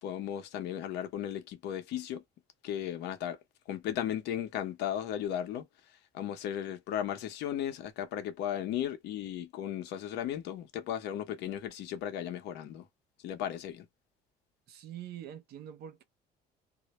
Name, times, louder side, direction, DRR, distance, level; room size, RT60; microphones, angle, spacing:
voice 1, 0.0-2.2 2.6-3.4 3.7-5.7 6.1-12.9 13.2-13.9, left 10 dB, 80° left, 0.7 m, -35 dB
voice 2, 14.7-16.0, right 10 dB, 70° right, 0.6 m, -44 dB
2.1 x 2.0 x 2.9 m
cardioid pair, 110°, 17 cm